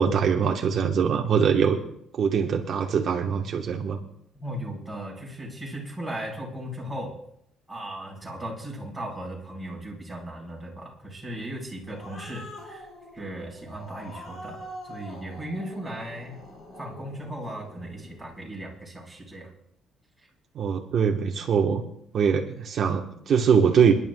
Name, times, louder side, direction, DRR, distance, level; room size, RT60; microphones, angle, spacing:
voice 1, 0.0-1.8 2.1-4.0 20.5-21.8 22.1-23.9, right 7 dB, 50° right, 1 dB, 1.0 m, -22 dB
voice 2, 4.3-7.2 7.7-12.9 13.1-14.6 14.8-16.4 16.8-19.5, right 1 dB, 5° right, -3 dB, 4.1 m, -37 dB
Growling, 11.6-18.4, left 1 dB, 40° left, 4.8 m, -44 dB
28.5 x 11.0 x 2.2 m, 0.71 s
cardioid pair, 145°, 0 cm